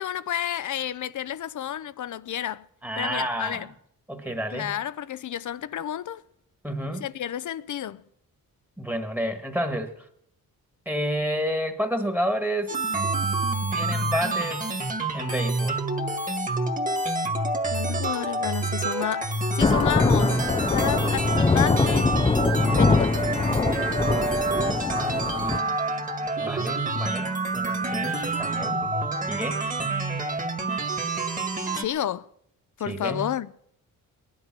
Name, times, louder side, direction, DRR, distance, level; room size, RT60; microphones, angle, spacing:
voice 1, 0.0-2.6 3.0-3.7 4.5-6.2 7.0-8.0 17.7-20.4 20.7-22.1 22.7-23.3 31.8-32.3 32.8-33.5, left 10 dB, 55° left, 0.6 m, -30 dB
voice 2, 2.8-3.7 4.1-4.7 6.6-7.1 8.8-9.9 10.8-12.7 13.7-14.7 15.1-15.8 24.9-25.8 26.4-28.9 29.3-29.7 32.9-33.3, equal, 5° right, 1.6 m, -30 dB
sound 1, 12.7-31.9, right 2 dB, 20° right, 1.9 m, -27 dB
Thunder / Rain, 19.6-25.6, left 3 dB, 15° left, 0.5 m, -23 dB
19.5 x 11.0 x 6.0 m
cardioid pair, 115°, 35 cm